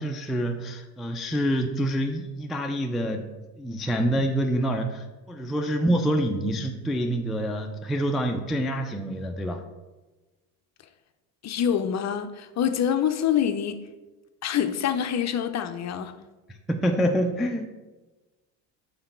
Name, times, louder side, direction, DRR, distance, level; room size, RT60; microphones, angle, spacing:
voice 1, 0.0-3.3 3.6-9.6 16.7-17.7, equal, ahead, 3 dB, 0.3 m, -26 dB
voice 2, 11.4-13.8 14.4-16.2, left 9 dB, 40° left, 9 dB, 0.6 m, -26 dB
5.6 x 4.0 x 5.7 m, 1.2 s
supercardioid pair, 90°, 43 cm